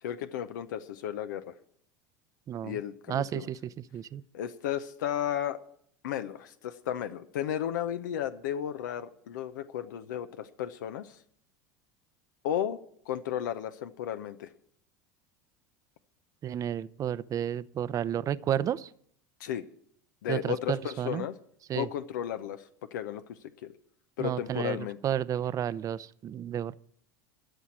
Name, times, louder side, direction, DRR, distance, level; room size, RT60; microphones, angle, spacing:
voice 1, 0.0-1.5 2.6-3.5 4.3-5.6 6.0-11.2 12.4-12.8 13.1-14.5 19.4-19.6 20.2-21.3 21.7-23.7 24.2-25.0, left 10 dB, 80° left, 11 dB, 0.7 m, -34 dB
voice 2, 2.5-2.8 3.1-4.2 16.4-18.9 20.3-21.3 21.7-21.9 24.2-26.7, right 10 dB, 35° right, 17 dB, 0.6 m, -32 dB
12.5 x 6.1 x 9.7 m, 0.65 s
hypercardioid pair, 100°, 10 cm